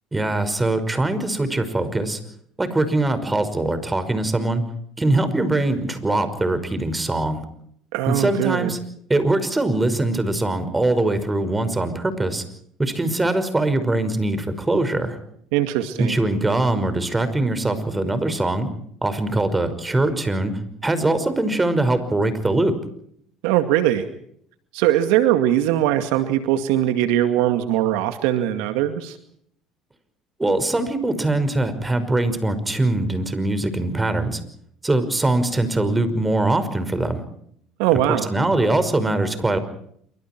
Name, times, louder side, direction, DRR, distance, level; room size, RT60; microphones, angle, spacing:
voice 1, 0.1-2.2 2.6-4.6 5.0-7.4 8.1-8.8 9.1-12.4 12.8-15.2 16.0-18.7 19.0-20.5 20.8-22.7 30.4-34.4 34.8-37.2 38.1-39.6, right 2 dB, 15° right, 11 dB, 5.6 m, -22 dB
voice 2, 7.9-8.7 15.5-16.2 23.4-24.1 24.7-29.2 37.8-38.3, right 12 dB, 75° right, 9 dB, 2.2 m, -21 dB
27.5 x 25.5 x 4.6 m, 0.67 s
supercardioid pair, 80°, 0 cm